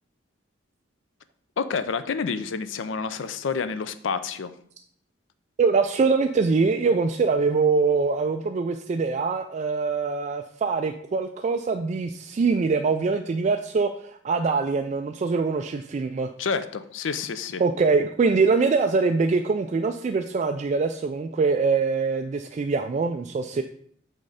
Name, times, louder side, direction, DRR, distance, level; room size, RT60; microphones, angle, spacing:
voice 1, 1.6-4.5 16.4-17.6, left 5 dB, 80° left, 13 dB, 0.5 m, -29 dB
voice 2, 5.6-16.3 17.6-23.6, right 4 dB, 40° right, 7 dB, 0.3 m, -23 dB
6.4 x 4.2 x 4.9 m, 0.64 s
head